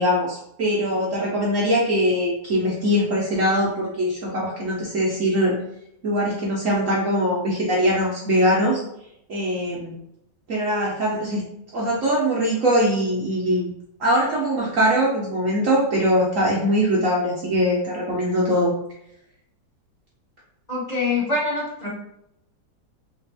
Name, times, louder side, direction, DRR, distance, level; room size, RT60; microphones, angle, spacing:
voice 1, 0.0-5.6 6.0-8.8 9.3-9.9 10.5-11.4 11.7-13.7 14.0-18.7, equal, 60° right, -4 dB, 1.0 m, -22 dB
voice 2, 20.7-21.9, left 3 dB, 25° left, -7 dB, 1.1 m, -24 dB
3.3 x 3.2 x 3.3 m, 0.78 s
omnidirectional pair, 1.9 m